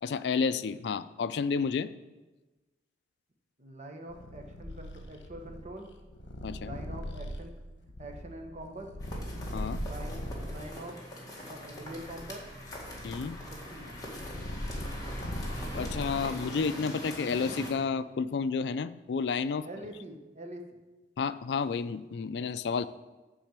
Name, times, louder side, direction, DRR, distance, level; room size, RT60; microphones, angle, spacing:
voice 1, 0.0-1.9 6.4-6.8 9.5-9.8 13.0-13.4 15.7-19.7 21.2-22.9, left 5 dB, 65° left, 14 dB, 0.4 m, -31 dB
voice 2, 3.6-5.9 6.6-7.5 8.0-8.9 9.8-11.1 11.4-12.4 13.4-14.0 14.4-14.6 19.6-20.6, right 1 dB, 40° right, 3 dB, 1.2 m, -44 dB
Purr, 4.1-10.6 11.3-16.5, equal, 80° left, 1.0 m, -40 dB
sound 1, 9.0-17.7, equal, 20° left, 1.7 m, -42 dB
10.5 x 4.4 x 7.4 m, 1.1 s
head